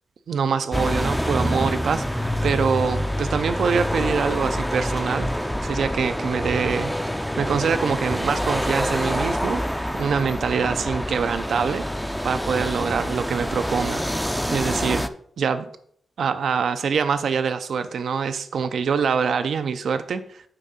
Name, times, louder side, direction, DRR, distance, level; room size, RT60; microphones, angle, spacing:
voice 1, 0.3-6.9 7.4-9.6 10.0-11.8 12.2-15.0 15.4-15.7 16.2-20.4, right 6 dB, 80° right, 11 dB, 0.5 m, -24 dB
sound 1, 0.7-15.1, equal, ahead, 0.4 m, -26 dB
8.8 x 3.7 x 5.6 m, 0.64 s
wide cardioid pair, 150°, 0 cm